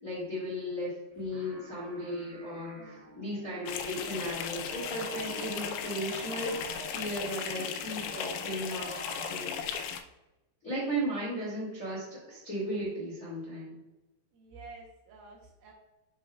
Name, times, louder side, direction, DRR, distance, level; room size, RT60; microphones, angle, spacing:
voice 1, 0.0-8.9 9.2-10.0 10.6-13.8, equal, 35° left, -6 dB, 1.5 m, -36 dB
sound 1, 1.1-9.4, right 1 dB, 55° right, 1.3 m, -48 dB
voice 2, 2.8-3.3 14.3-15.7, right 3 dB, 75° right, -1 dB, 2.3 m, -51 dB
sound 2, 3.7-10.0, left 7 dB, 90° left, 2.7 m, -37 dB
8.4 x 6.2 x 2.2 m, 1.0 s
omnidirectional pair, 4.7 m